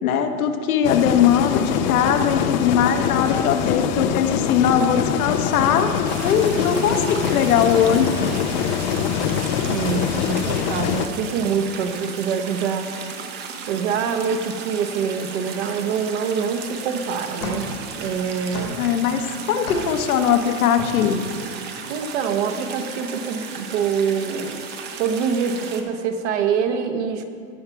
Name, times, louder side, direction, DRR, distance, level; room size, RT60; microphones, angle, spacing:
voice 1, 0.0-8.1 18.8-21.3, left 8 dB, 70° left, 6 dB, 1.1 m, -20 dB
sound 1, 0.8-11.1, left 8 dB, 30° left, 0.5 m, -24 dB
sound 2, 6.1-25.8, right 6 dB, 25° right, 0.7 m, -35 dB
voice 2, 9.7-12.9 13.7-18.8 21.9-24.6 25.0-27.2, right 6 dB, 50° right, 7 dB, 1.1 m, -25 dB
sound 3, 16.5-21.4, left 3 dB, 90° left, 3.0 m, -36 dB
16.5 x 5.8 x 4.6 m, 2.3 s
hypercardioid pair, 135°, 45 cm